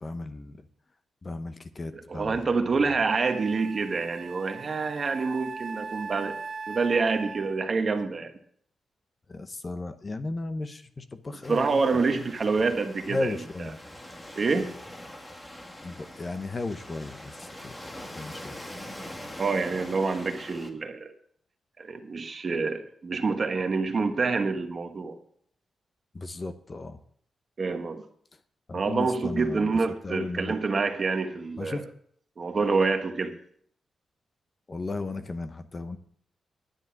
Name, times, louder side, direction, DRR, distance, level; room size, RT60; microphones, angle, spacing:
voice 1, 0.0-0.6 1.2-2.5 9.3-11.8 12.1-12.3 13.1-13.8 15.8-18.7 26.1-27.0 28.7-29.7 30.0-30.5 31.6-31.9 34.7-36.0, left 2 dB, 30° left, 10 dB, 0.9 m, -35 dB
voice 2, 2.1-6.3 6.7-8.3 11.5-13.3 14.3-14.7 19.4-21.1 21.8-25.2 27.6-28.0 28.7-31.8 32.4-33.4, right 4 dB, 40° right, 6 dB, 1.3 m, -27 dB
Wind instrument woodwind instrument, 2.4-2.5 3.1-7.7, right 4 dB, 55° right, 1.2 m, -39 dB
Waves surf, 11.4-20.7, left 1 dB, 15° left, 1.5 m, -43 dB
10.5 x 9.6 x 5.9 m, 0.63 s
wide cardioid pair, 120°, 0 cm